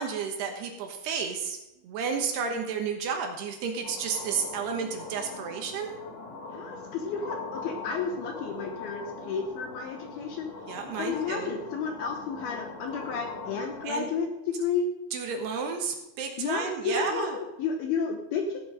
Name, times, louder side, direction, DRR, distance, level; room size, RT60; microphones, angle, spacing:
voice 1, 0.0-1.6 1.8-6.0 10.7-11.6 13.8-14.1 15.1-17.4, right 6 dB, 70° right, 3 dB, 3.0 m, -32 dB
sound 1, 3.8-13.8, left 3 dB, 50° left, 1.3 m, -41 dB
voice 2, 6.5-10.5 11.0-14.3 14.6-14.9 16.4-18.6, left 5 dB, 70° left, 3 dB, 2.5 m, -32 dB
16.5 x 7.8 x 4.9 m, 0.93 s
omnidirectional pair, 5.3 m